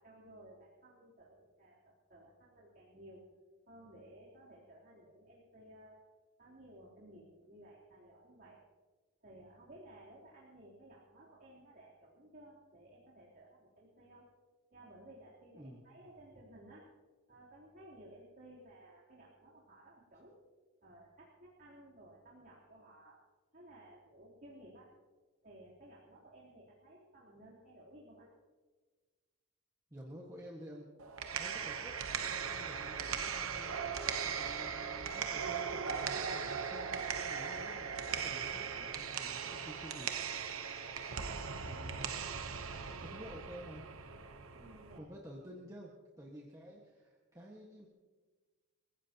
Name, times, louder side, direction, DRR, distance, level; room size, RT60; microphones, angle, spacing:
voice 1, 0.0-3.2 3.7-6.1 6.4-8.6 9.2-14.3 14.7-16.9 17.3-20.4 20.8-23.2 23.5-24.9 25.4-28.3 44.5-45.1, right 1 dB, 45° right, -6 dB, 3.5 m, -57 dB
voice 2, 29.9-30.9 31.4-32.0 32.3-33.8 34.2-40.1 41.6-42.3 43.0-43.9 45.0-47.9, equal, 15° right, -3 dB, 1.6 m, -51 dB
sound 1, 31.0-45.0, right 6 dB, 70° right, 1.0 m, -39 dB
29.5 x 15.0 x 3.0 m, 1.4 s
head